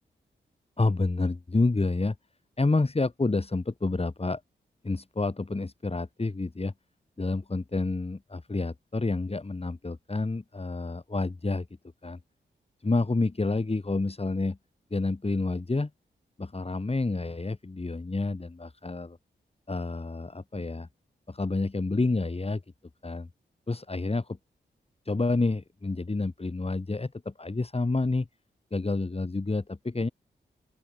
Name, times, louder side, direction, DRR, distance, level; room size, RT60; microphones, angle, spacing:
voice 1, 0.8-2.2 2.6-4.4 4.8-6.7 7.2-11.7 12.0-12.2 12.8-14.6 14.9-15.9 16.4-19.2 19.7-20.9 21.3-22.6 23.0-23.3 23.7-24.4 25.0-28.3 28.7-30.1, left 3 dB, 30° left, 4.6 m, -29 dB
open air
cardioid pair, 55°, 19 cm